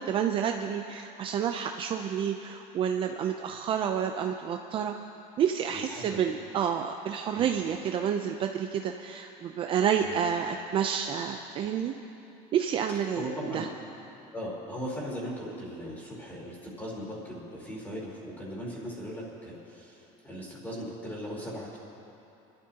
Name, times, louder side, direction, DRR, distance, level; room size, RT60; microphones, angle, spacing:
voice 1, 0.0-5.0 5.4-11.9 12.5-13.7, right 8 dB, 35° right, 4 dB, 0.5 m, -29 dB
voice 2, 5.7-6.2 7.3-7.5 10.0-10.2 12.9-13.7 14.3-21.8, equal, 10° left, -5 dB, 3.7 m, -38 dB
29.0 x 12.0 x 2.9 m, 2.8 s
cardioid pair, 160°, 16 cm